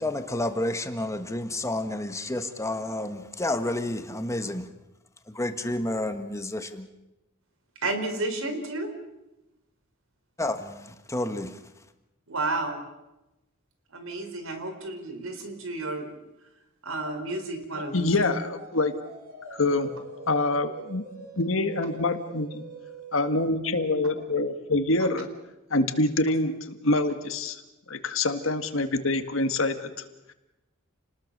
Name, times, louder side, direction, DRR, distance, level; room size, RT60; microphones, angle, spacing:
voice 1, 0.0-4.7 5.3-6.9 10.4-11.5, left 1 dB, 15° left, 1.5 m, -30 dB
voice 2, 7.8-8.9 12.3-12.8 13.9-16.1 16.8-18.4, right 2 dB, 90° right, 4.2 m, -32 dB
sound 1, 16.8-23.5, right 2 dB, 45° right, 6.7 m, -45 dB
voice 3, 17.9-19.0 19.5-19.9 20.3-21.0 21.4-22.6 23.1-25.3 25.7-27.6 27.9-29.9 30.3-30.4, left 2 dB, 70° left, 1.8 m, -25 dB
29.0 x 20.0 x 6.7 m
head